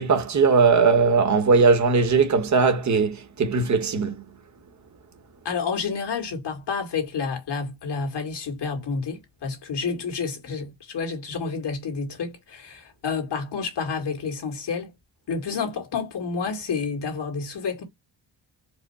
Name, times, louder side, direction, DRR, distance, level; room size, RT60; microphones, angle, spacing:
voice 1, 0.0-4.3, right 4 dB, 40° right, 1.1 m, -19 dB
voice 2, 5.4-14.9 15.3-17.8, left 5 dB, 65° left, 2.0 m, -29 dB
4.9 x 2.1 x 4.2 m
wide cardioid pair, 145°, 44 cm